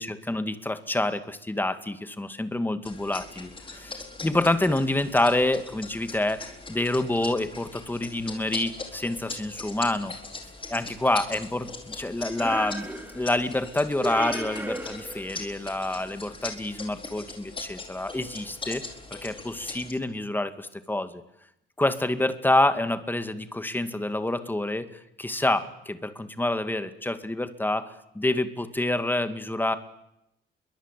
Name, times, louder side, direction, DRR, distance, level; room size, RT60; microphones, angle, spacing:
voice 1, 0.0-10.1 10.7-12.9 13.1-18.8 19.2-21.2 21.8-29.8, left 1 dB, 10° left, 10 dB, 2.2 m, -27 dB
sound 1, 2.8-19.9, left 3 dB, 25° left, 4.6 m, -41 dB
sound 2, 12.4-13.4 14.0-15.4, right 1 dB, 10° right, 2.3 m, -34 dB
29.5 x 23.0 x 8.4 m, 0.81 s
cardioid pair, 125°, 20 cm